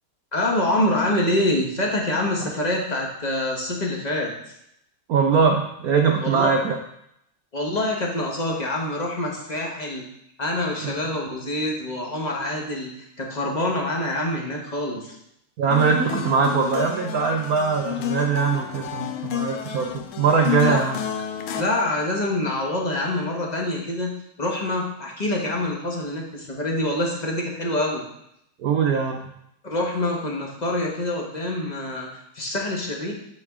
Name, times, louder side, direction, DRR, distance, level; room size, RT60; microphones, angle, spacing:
voice 1, 0.3-4.5 6.2-6.5 7.5-10.0 10.4-15.2 20.6-20.8 21.5-24.1 24.4-28.0 29.6-33.1, left 1 dB, 30° left, -1 dB, 0.8 m, -26 dB
voice 2, 5.1-6.7 10.8-10.9 15.6-21.0 28.6-29.3, right 5 dB, 75° right, 2 dB, 0.8 m, -21 dB
sound 1, 15.7-21.6, left 10 dB, 90° left, 1.5 m, -30 dB
9.8 x 4.5 x 3.6 m, 0.77 s
omnidirectional pair, 2.3 m